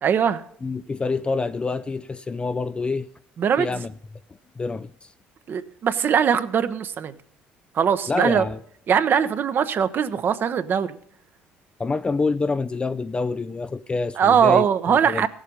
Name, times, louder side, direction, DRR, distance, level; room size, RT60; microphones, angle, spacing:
voice 1, 0.0-0.4 3.4-3.7 5.5-7.1 7.7-8.4 8.9-11.0 14.2-15.3, right 7 dB, 50° right, 0.9 m, -21 dB
voice 2, 0.6-3.1 3.6-3.9 4.6-5.1 8.1-8.6 11.8-15.3, left 4 dB, 25° left, 0.4 m, -27 dB
16.5 x 7.3 x 5.4 m
supercardioid pair, 75°, 4 cm